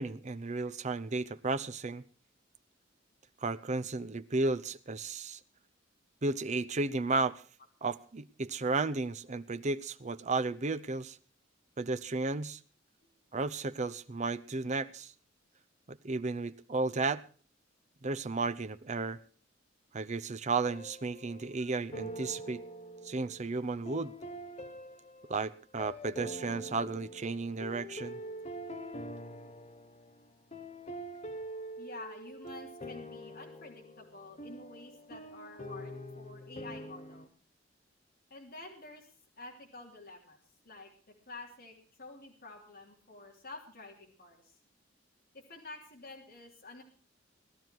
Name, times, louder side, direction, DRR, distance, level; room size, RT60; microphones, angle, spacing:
voice 1, 0.0-2.0 3.4-5.4 6.2-7.4 7.8-11.2 11.8-12.6 13.3-15.1 15.9-17.2 18.0-19.2 19.9-22.6 23.0-24.1 25.3-28.2, right 3 dB, 40° right, 13 dB, 0.7 m, -33 dB
sound 1, 20.7-21.6 21.9-37.3, equal, 35° left, 1.2 m, -45 dB
voice 2, 31.8-37.3 38.3-39.1 39.4-40.4 40.7-44.5 45.3-46.8, left 2 dB, 55° left, 0 dB, 3.5 m, -49 dB
18.5 x 12.5 x 4.6 m, 0.41 s
head